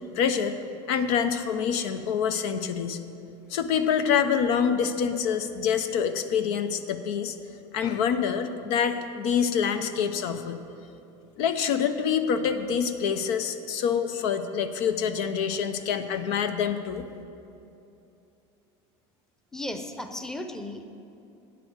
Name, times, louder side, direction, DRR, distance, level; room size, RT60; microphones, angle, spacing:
voice 1, 0.1-0.5 0.9-3.0 3.5-7.4 7.7-10.6 11.4-17.1, left 7 dB, 75° left, 9 dB, 0.8 m, -26 dB
voice 2, 19.5-20.9, left 1 dB, 5° left, 6 dB, 0.7 m, -35 dB
9.2 x 7.7 x 8.0 m, 2.7 s
supercardioid pair, 125°, 14 cm